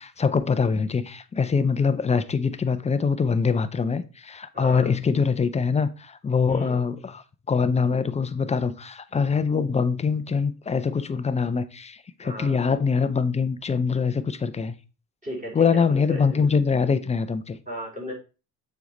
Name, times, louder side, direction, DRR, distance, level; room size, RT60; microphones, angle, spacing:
voice 1, 0.0-14.7 15.5-17.6, left 5 dB, 15° left, 0.5 m, -24 dB
voice 2, 4.5-4.9 6.5-6.8 12.2-12.6 15.2-15.6 15.9-16.5 17.7-18.1, equal, 15° right, 3.2 m, -36 dB
7.0 x 4.7 x 4.0 m
hypercardioid pair, 70°, 49 cm